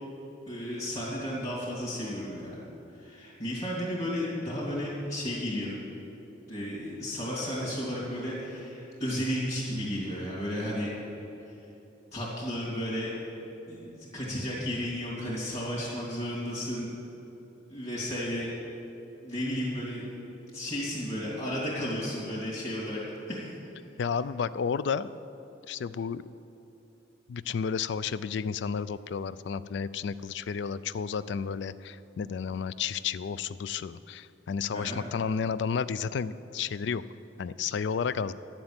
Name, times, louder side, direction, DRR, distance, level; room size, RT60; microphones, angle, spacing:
voice 1, 0.5-2.5 2.9-5.7 6.5-10.9 11.4-11.6 12.1-13.1 13.7-16.9 17.7-18.5 19.2-20.0 20.5-23.0 23.3-23.6 34.7-35.0, equal, 35° left, -7 dB, 2.8 m, -33 dB
voice 2, 24.0-25.1 25.7-26.2 27.3-37.0 37.4-38.3, left 6 dB, 60° left, 16 dB, 0.3 m, -32 dB
10.5 x 7.5 x 8.9 m, 2.9 s
head